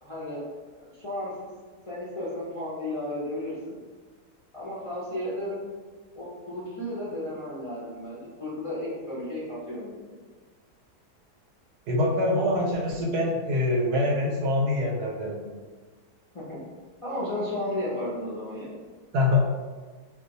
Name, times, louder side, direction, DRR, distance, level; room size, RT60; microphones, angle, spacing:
voice 1, 0.0-1.5 1.9-3.8 4.5-5.6 6.1-10.2 16.3-16.6 17.0-18.7, left 1 dB, 35° left, -9 dB, 0.5 m, -34 dB
voice 2, 11.9-15.4 19.1-19.5, left 2 dB, 85° right, -1 dB, 1.3 m, -24 dB
2.6 x 2.4 x 3.9 m, 1.4 s
omnidirectional pair, 1.7 m